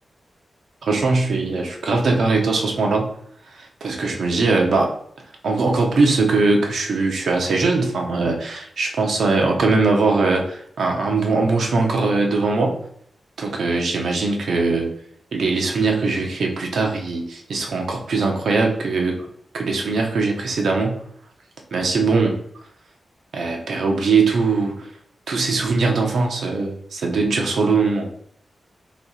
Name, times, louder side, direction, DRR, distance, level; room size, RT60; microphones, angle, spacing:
voice 1, 0.8-3.1 3.5-5.0 5.4-12.8 13.4-14.9 15.3-19.2 19.5-21.0 21.7-22.4 23.3-24.9 25.3-28.1, right 3 dB, 85° right, 1 dB, 0.9 m, -21 dB
3.2 x 2.9 x 4.1 m, 0.67 s
wide cardioid pair, 165°, 0 cm